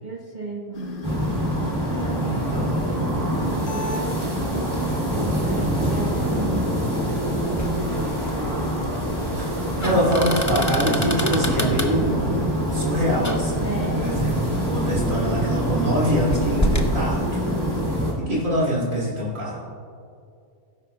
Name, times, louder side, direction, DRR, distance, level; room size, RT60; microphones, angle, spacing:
voice 1, 0.0-1.1 1.9-8.8 9.7-10.0 13.6-14.2, right 2 dB, 35° right, -2 dB, 1.0 m, -34 dB
sound 1, 0.7-17.8, left 4 dB, 40° left, 0.9 m, -36 dB
sound 2, 1.0-18.1, right 1 dB, 20° right, 2.9 m, -25 dB
voice 2, 2.2-2.8 9.2-9.5 9.8-12.2 12.7-13.7 14.0-19.6, equal, 60° right, -7 dB, 3.0 m, -25 dB
sound 3, 7.4-16.9, equal, 20° left, 0.5 m, -31 dB
18.5 x 10.5 x 2.3 m, 2.5 s
omnidirectional pair, 1.6 m